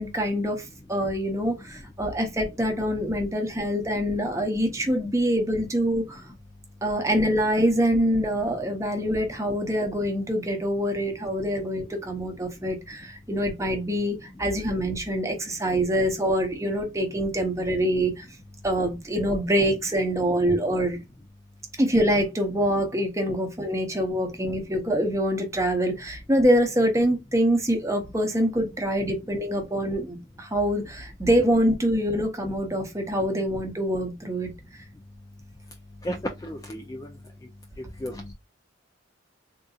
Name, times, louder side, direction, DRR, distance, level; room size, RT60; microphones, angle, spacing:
voice 1, 0.0-6.2 6.8-18.3 18.6-21.0 21.8-34.5, equal, 15° right, 0.7 m, -25 dB
voice 2, 36.4-37.1 38.0-38.3, equal, 15° left, 0.3 m, -33 dB
3.7 x 2.6 x 2.3 m
head